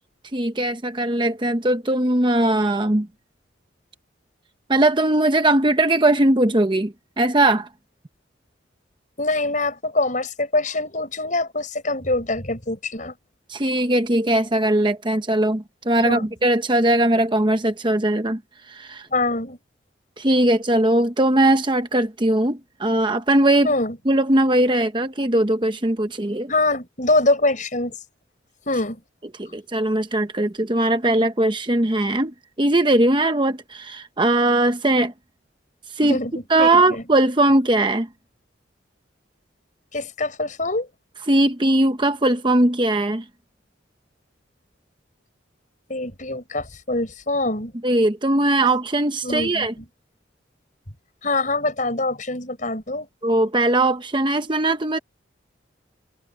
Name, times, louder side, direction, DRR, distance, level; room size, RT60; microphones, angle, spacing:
voice 1, 0.3-3.1 4.7-7.7 13.5-18.4 18.7-19.1 20.2-23.7 24.1-26.5 29.4-35.1 35.9-36.2 36.5-38.1 41.3-43.2 47.8-49.7 53.2-55.0, right 1 dB, 25° right, 0.9 m, -20 dB
voice 2, 9.2-13.1 16.0-16.3 19.1-19.6 23.6-24.0 26.5-28.0 28.7-29.0 36.0-37.0 39.9-40.9 45.9-47.7 49.2-49.8 51.2-53.1, left 2 dB, 45° left, 6.4 m, -24 dB
head